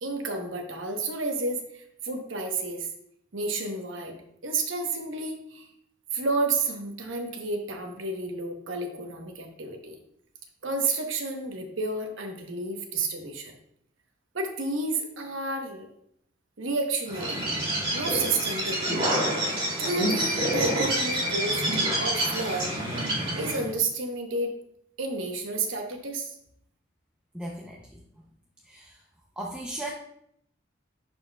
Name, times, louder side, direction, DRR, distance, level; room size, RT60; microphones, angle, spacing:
voice 1, 0.0-2.9 3.3-4.1 4.4-5.7 6.1-10.0 10.6-13.5 14.3-15.9 16.6-17.4 17.9-18.9 19.8-21.6 22.0-22.7 23.3-24.5 25.0-26.3, right 3 dB, 80° right, 4 dB, 1.0 m, -31 dB
Bird, 17.1-23.7, right 1 dB, 30° right, 2.1 m, -27 dB
voice 2, 27.3-28.3 28.6-29.0 29.4-29.9, right 1 dB, 5° right, -2 dB, 0.6 m, -37 dB
11.0 x 4.3 x 2.3 m, 0.72 s
head